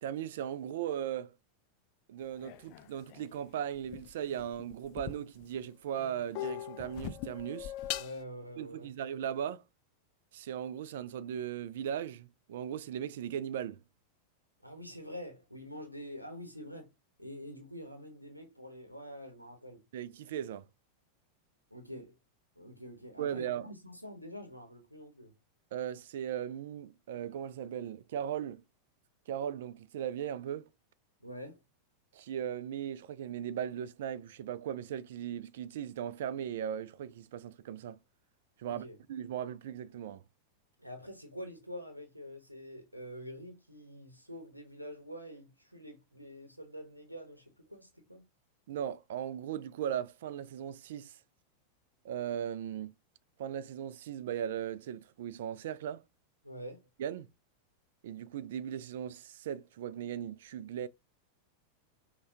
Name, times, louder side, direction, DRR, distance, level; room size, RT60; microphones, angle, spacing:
voice 1, 0.0-1.3 2.1-7.7 8.6-9.6 10.3-13.8 19.9-20.7 23.2-23.7 25.7-28.6 29.3-30.7 32.1-38.0 38.6-40.2 48.7-51.2 52.0-52.9 53.4-56.0 57.0-57.3 58.0-60.9, right 9 dB, 55° right, 0.3 m, -38 dB
sound 1, 2.4-5.6 6.0-8.2, left 12 dB, 45° left, 0.4 m, -41 dB
voice 2, 7.9-8.9 14.6-16.9 17.2-19.8 21.7-22.2 22.6-25.3 31.2-31.6 38.6-39.0 40.8-48.2 56.4-56.9, equal, 90° right, 0.8 m, -46 dB
5.4 x 2.2 x 2.8 m
figure-of-eight pair, 90°, 0 cm